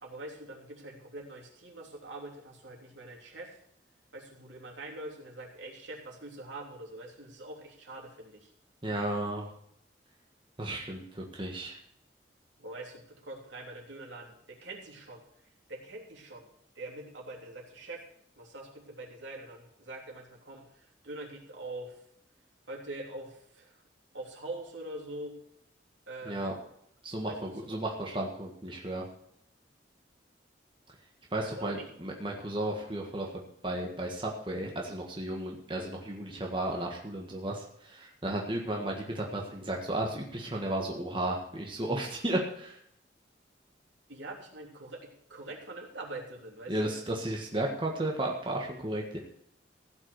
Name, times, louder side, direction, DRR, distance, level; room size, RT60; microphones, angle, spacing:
voice 1, 0.0-3.6 4.1-8.5 12.6-15.2 15.7-16.5 16.7-18.0 18.4-21.9 22.7-23.8 24.1-25.3 26.1-26.5 27.3-27.8 31.4-31.9 44.1-47.0, right 2 dB, 80° right, -1 dB, 3.2 m, -44 dB
voice 2, 8.8-9.5 10.6-11.8 26.2-26.5 27.0-29.0 31.3-42.8 46.7-49.2, right 1 dB, 25° right, 0 dB, 1.6 m, -34 dB
15.5 x 6.2 x 8.1 m, 0.70 s
head